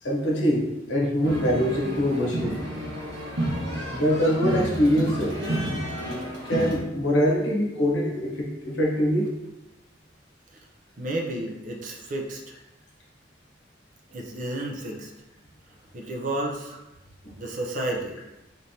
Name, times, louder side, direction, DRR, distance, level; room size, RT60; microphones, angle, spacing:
voice 1, 0.0-2.6 3.9-5.4 6.4-9.3, equal, 75° left, -2 dB, 1.1 m, -24 dB
sound 1, 1.2-6.8, right 1 dB, 70° right, 1.1 m, -30 dB
voice 2, 11.0-12.4 14.1-15.1 15.9-16.7 17.4-18.2, right 1 dB, 45° right, 0 dB, 0.6 m, -31 dB
4.1 x 3.3 x 2.8 m, 0.93 s
head